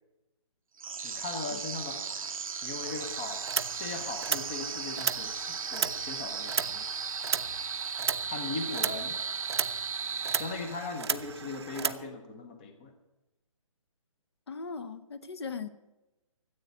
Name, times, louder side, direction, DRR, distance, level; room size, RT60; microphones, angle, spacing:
sound 1, 0.8-11.0, right 6 dB, 90° right, 0.9 m, -36 dB
voice 1, 1.0-2.1 2.6-3.5 3.8-7.0 8.3-9.2 10.3-12.9, left 3 dB, 15° left, 7 dB, 0.7 m, -39 dB
sound 2, 2.8-12.0, right 6 dB, 50° right, 0.7 m, -35 dB
voice 2, 14.5-15.7, left 5 dB, 50° left, 13 dB, 1.0 m, -38 dB
14.0 x 8.1 x 9.4 m, 1.0 s
hypercardioid pair, 170°, 17 cm